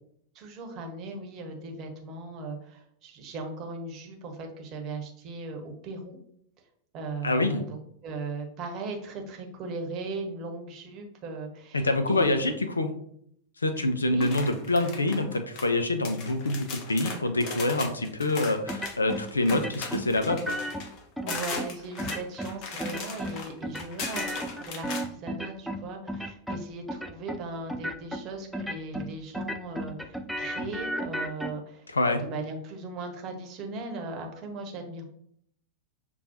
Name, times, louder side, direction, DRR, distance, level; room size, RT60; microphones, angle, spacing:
voice 1, 0.3-6.2 6.9-7.8 8.0-12.5 14.1-14.3 21.2-31.9 32.2-35.0, right 3 dB, 35° right, 3 dB, 0.9 m, -38 dB
voice 2, 7.2-7.6 11.7-12.9 13.6-20.4 31.9-32.2, left 2 dB, 75° left, 8 dB, 0.4 m, -26 dB
sound 1, 14.2-15.7 16.0-25.0, left 4 dB, 40° left, 0.7 m, -38 dB
sound 2, 18.7-19.2 19.5-20.8 21.2-21.7 22.0-22.5 22.8-23.4 23.6-25.8 26.1-26.6 26.9-27.4 27.7-28.2 28.5-29.1 29.3-31.5, equal, ahead, 0.3 m, -33 dB
6.7 x 2.3 x 2.8 m, 0.70 s
figure-of-eight pair, 90°, 0 cm